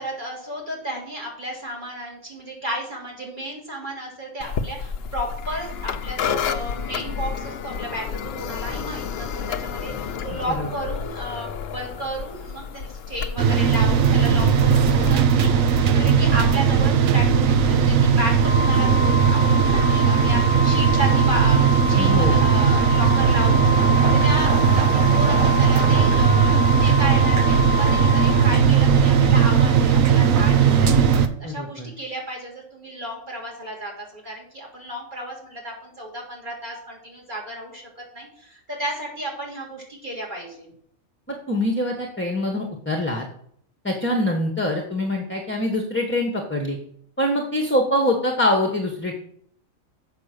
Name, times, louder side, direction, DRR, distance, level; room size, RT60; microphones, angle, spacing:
voice 1, 0.0-23.7 24.0-31.0 31.4-40.7, right 1 dB, 35° right, -2 dB, 3.3 m, -33 dB
sound 1, 4.4-15.1, left 7 dB, 55° left, 0.8 m, -31 dB
sound 2, 13.4-31.3, right 7 dB, 80° right, 1.2 m, -18 dB
Organ, 18.4-29.1, left 2 dB, 55° right, 2.1 m, -27 dB
voice 2, 22.0-22.5 31.4-31.9 41.3-43.2 43.8-46.8 47.2-49.2, left 1 dB, 10° left, 2 dB, 1.2 m, -24 dB
7.9 x 5.9 x 6.6 m, 0.65 s
omnidirectional pair, 1.4 m